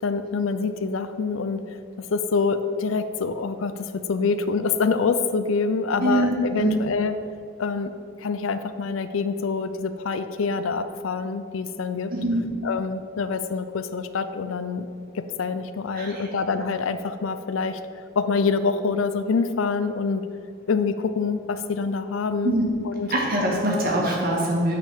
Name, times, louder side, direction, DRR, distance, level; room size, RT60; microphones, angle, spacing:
voice 1, 0.0-1.6 2.0-7.1 7.6-7.9 8.2-12.1 12.6-14.9 15.1-17.8 18.2-20.2 20.7-22.6 22.8-23.1, left 4 dB, 85° left, 11 dB, 0.5 m, -26 dB
voice 2, 6.0-6.8 12.1-12.4 15.9-16.3 22.4-22.6 23.1-24.8, right 1 dB, 50° right, -2 dB, 1.9 m, -23 dB
8.9 x 4.3 x 6.9 m, 2.3 s
head